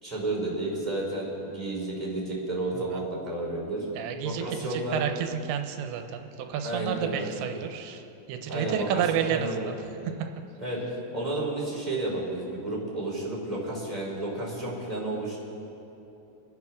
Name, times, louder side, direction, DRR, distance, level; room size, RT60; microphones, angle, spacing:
voice 1, 0.0-3.8 4.2-5.0 6.6-7.5 8.5-9.8 10.6-10.8 11.1-15.4, right 2 dB, 10° right, -6 dB, 2.9 m, -32 dB
voice 2, 4.0-4.4 4.7-8.0 8.3-9.7, right 8 dB, 85° right, 6 dB, 3.1 m, -30 dB
27.0 x 10.5 x 3.6 m, 2.8 s
omnidirectional pair, 5.2 m